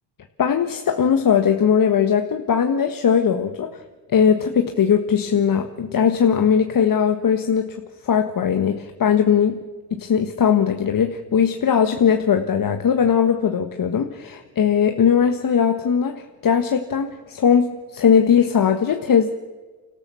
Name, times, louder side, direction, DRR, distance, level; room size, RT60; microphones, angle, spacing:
voice 1, 0.4-3.8 4.1-7.8 8.0-9.6 9.9-19.3, left 7 dB, 40° left, 6 dB, 1.6 m, -19 dB
28.5 x 13.5 x 7.1 m, 1.3 s
hypercardioid pair, 60°, 49 cm